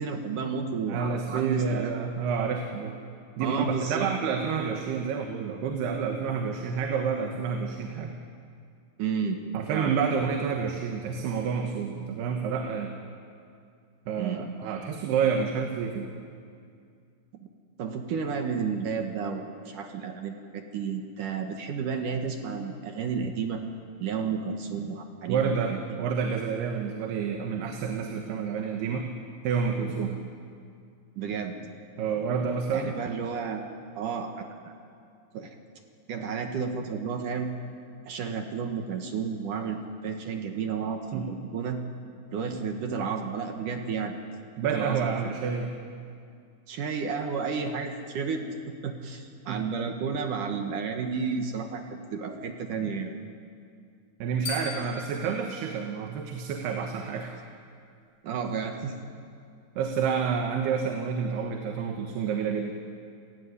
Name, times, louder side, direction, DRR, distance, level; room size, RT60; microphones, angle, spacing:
voice 1, 0.0-1.9 3.4-4.1 9.0-9.4 9.7-9.9 14.2-14.5 17.8-23.6 24.0-25.8 31.2-31.6 32.7-34.7 35.3-35.6 36.1-37.5 38.1-41.8 42.3-44.1 44.7-45.4 46.7-48.5 48.8-53.1 58.2-59.0, right 6 dB, 60° right, 4 dB, 2.7 m, -32 dB
voice 2, 0.9-3.0 3.4-8.1 9.5-12.9 14.1-16.1 25.3-29.1 29.4-30.2 32.0-32.9 41.1-41.3 44.6-45.8 49.5-49.7 54.2-57.3 59.8-62.7, right 6 dB, 85° right, 3 dB, 3.5 m, -29 dB
sound 1, 54.5-56.7, left 4 dB, 65° left, 8.2 m, -40 dB
28.5 x 16.5 x 9.8 m, 2.3 s
omnidirectional pair, 4.6 m